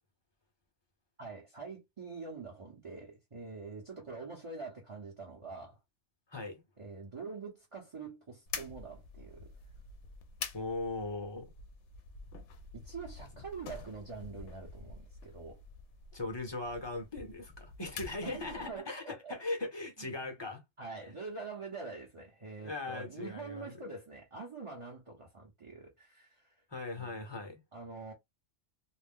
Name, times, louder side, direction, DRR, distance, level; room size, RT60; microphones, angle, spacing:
voice 1, 1.2-5.8 6.8-9.5 12.7-15.6 18.2-19.4 20.8-26.5 27.0-27.1 27.7-28.1, right 4 dB, 30° right, 0.8 m, -45 dB
voice 2, 6.3-6.6 10.5-11.5 13.3-13.4 16.1-20.6 22.6-23.7 26.7-27.6, left 2 dB, 25° left, 0.7 m, -39 dB
sound 1, 8.5-18.8, left 5 dB, 75° left, 0.9 m, -47 dB
2.6 x 2.0 x 3.6 m
omnidirectional pair, 1.3 m